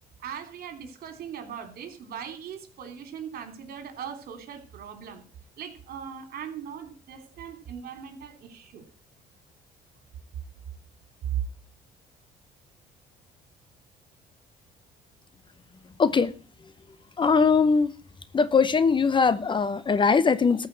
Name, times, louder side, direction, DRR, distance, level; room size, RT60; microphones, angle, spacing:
voice 1, 0.2-5.2 5.6-8.8, right 8 dB, 65° right, 6 dB, 3.3 m, -40 dB
voice 2, 16.0-16.3 17.2-17.9 18.3-20.7, left 5 dB, 30° left, 15 dB, 0.8 m, -21 dB
14.0 x 5.7 x 7.6 m, 0.38 s
cardioid pair, 110°, 17 cm